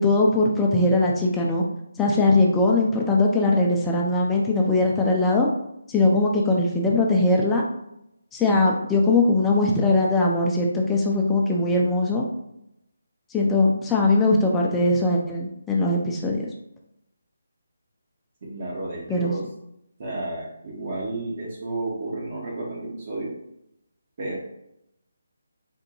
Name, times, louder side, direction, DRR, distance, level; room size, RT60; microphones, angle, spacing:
voice 1, 0.0-1.6 2.0-5.5 5.9-7.6 8.3-12.2 13.3-16.4 19.1-19.3, left 2 dB, 10° left, -2 dB, 0.3 m, -20 dB
voice 2, 18.4-19.5 20.0-23.4 24.2-24.4, right 2 dB, 40° right, -3 dB, 0.7 m, -32 dB
3.6 x 2.1 x 2.8 m, 0.81 s
figure-of-eight pair, 150°, 0 cm